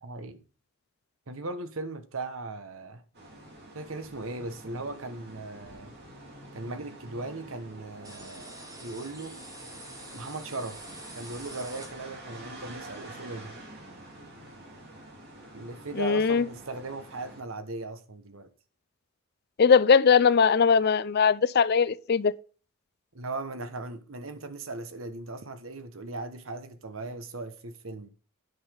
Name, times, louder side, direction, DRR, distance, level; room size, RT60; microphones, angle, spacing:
voice 1, 0.0-0.4 1.3-3.0 3.7-5.9 6.5-9.4 10.1-10.8 11.1-13.5 15.5-18.5 23.1-28.1, right 2 dB, 75° right, 1.2 m, -38 dB
sound 1, 3.1-17.4, right 1 dB, 50° right, 2.8 m, -47 dB
sound 2, 8.0-12.4, right 1 dB, 15° right, 2.1 m, -46 dB
voice 2, 16.0-16.4 19.6-22.3, left 6 dB, 50° left, 0.4 m, -20 dB
9.4 x 5.7 x 5.1 m
head